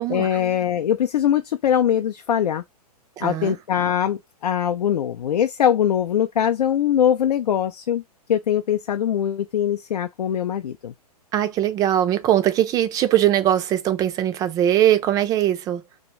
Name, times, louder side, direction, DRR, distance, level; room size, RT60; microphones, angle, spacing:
voice 1, 0.1-2.6 3.2-4.2 4.4-8.0 8.3-10.9, left 9 dB, 80° left, 0.4 m, -22 dB
voice 2, 3.2-3.6 11.3-15.8, right 11 dB, 20° right, 0.4 m, -20 dB
2.6 x 2.2 x 3.0 m
hypercardioid pair, 125°, 20 cm